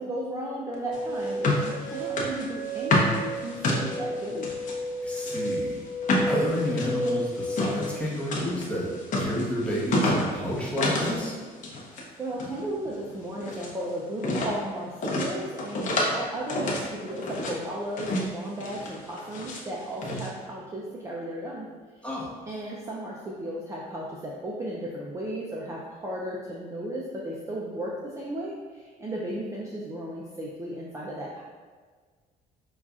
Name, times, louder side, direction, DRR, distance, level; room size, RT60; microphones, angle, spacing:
voice 1, 0.0-4.5 12.2-21.7 21.9-22.1 22.5-31.4, right 1 dB, 15° right, -4 dB, 0.4 m, -35 dB
sound 1, 0.7-7.9, equal, 90° left, 0.7 m, -32 dB
sound 2, 0.9-4.7 5.2-11.2 11.4-12.0 12.3-13.7 14.2-14.6 15.0-16.2 16.5-17.6 18.0-18.3 18.6-19.6 20.0-20.3, left 1 dB, 50° left, 0.7 m, -29 dB
voice 2, 5.0-5.8 6.3-8.9 9.2-11.4 22.0-22.3, equal, 5° left, -6 dB, 0.9 m, -30 dB
5.3 x 2.4 x 2.4 m, 1.5 s
cardioid pair, 110°, 17 cm